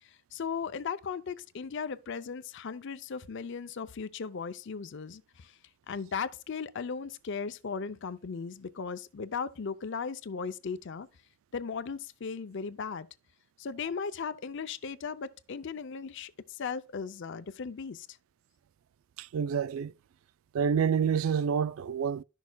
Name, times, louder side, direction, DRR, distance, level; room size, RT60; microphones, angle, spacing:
voice 1, 0.0-5.6 5.9-11.1 11.5-13.1 13.6-18.2, left 5 dB, 60° left, 0.5 m, -37 dB
voice 2, 19.2-19.9 20.5-22.2, right 7 dB, 80° right, 0.3 m, -28 dB
11.5 x 6.4 x 2.2 m
head